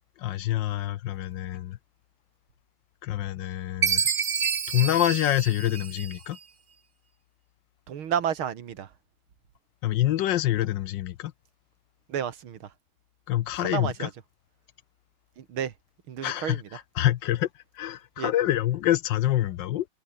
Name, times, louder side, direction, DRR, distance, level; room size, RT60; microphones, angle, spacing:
voice 1, 0.2-1.8 3.0-4.1 4.7-6.4 9.8-11.3 13.3-14.1 16.2-17.5 17.8-19.9, left 13 dB, 70° left, 1.3 m, -26 dB
Chime, 3.8-6.4, right 6 dB, 40° right, 0.9 m, -28 dB
voice 2, 7.9-8.9 12.1-12.6 13.6-14.1 15.4-15.7 16.1-16.6 18.2-18.3, right 9 dB, 85° right, 2.4 m, -31 dB
omnidirectional pair, 2.2 m